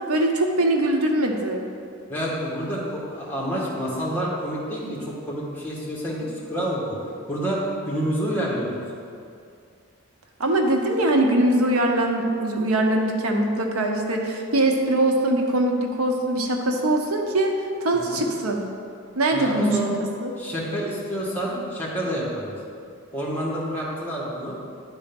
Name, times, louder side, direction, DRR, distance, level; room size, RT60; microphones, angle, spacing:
voice 1, 0.1-1.7 10.4-17.5 17.8-18.6 19.2-19.9 20.2-20.3, right 1 dB, 90° right, 2 dB, 0.8 m, -22 dB
voice 2, 2.1-7.0 7.3-8.7 17.9-18.2 19.3-19.9 20.4-22.5 23.1-24.5, equal, 10° left, -6 dB, 1.5 m, -28 dB
10.5 x 4.0 x 5.2 m, 2.4 s
head